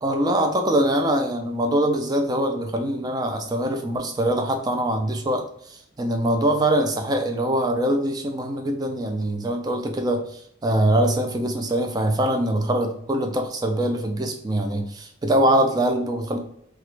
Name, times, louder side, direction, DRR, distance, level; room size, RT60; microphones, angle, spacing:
voice 1, 0.0-16.4, right 1 dB, 20° right, 4 dB, 0.3 m, -23 dB
2.9 x 2.3 x 3.2 m, 0.71 s
head